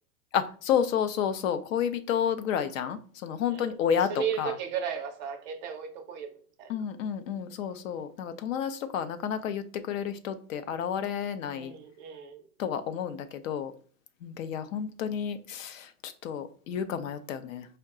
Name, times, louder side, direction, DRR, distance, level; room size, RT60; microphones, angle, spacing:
voice 1, 0.3-4.6 6.7-11.7 12.6-13.7 14.2-17.7, left 8 dB, 60° left, 0.6 m, -31 dB
voice 2, 4.1-6.3 6.6-6.7 11.5-12.4, right 7 dB, 30° right, 0.5 m, -35 dB
4.5 x 2.2 x 3.6 m
hypercardioid pair, 140°, 46 cm